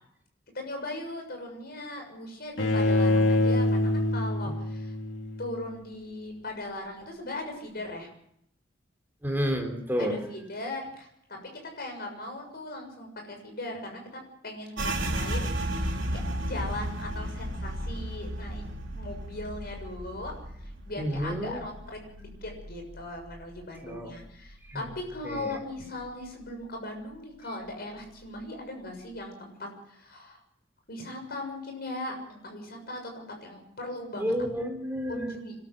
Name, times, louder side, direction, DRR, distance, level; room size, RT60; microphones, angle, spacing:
voice 1, 0.5-4.9 5.4-8.1 10.0-11.4 11.8-18.6 18.9-20.3 20.6-30.4 30.9-34.3 35.1-35.5, left 1 dB, 55° left, 3 dB, 6.9 m, -39 dB
Bowed string instrument, 2.6-5.6, left 1 dB, 75° left, 2.5 m, -25 dB
voice 2, 9.2-10.2 21.0-21.6 23.8-24.1 24.7-24.9 25.2-25.6 34.2-35.4, equal, 10° right, 2 dB, 3.8 m, -30 dB
sound 1, 14.8-24.2 24.5-25.7 26.0-26.5 26.9-27.5, right 1 dB, 80° right, 3.7 m, -35 dB
27.0 x 13.0 x 7.9 m, 0.74 s
head